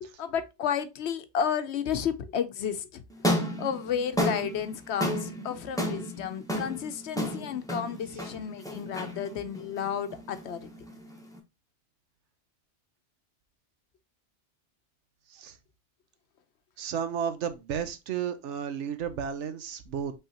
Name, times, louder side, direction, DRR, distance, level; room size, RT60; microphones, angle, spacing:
voice 1, 0.0-3.0 3.6-10.7, left 8 dB, 70° left, 0.9 m, -32 dB
sound 1, 3.1-11.4, equal, 5° left, 0.9 m, -33 dB
voice 2, 16.8-20.1, right 8 dB, 80° right, 1.1 m, -33 dB
5.5 x 3.4 x 2.8 m
omnidirectional pair, 1.2 m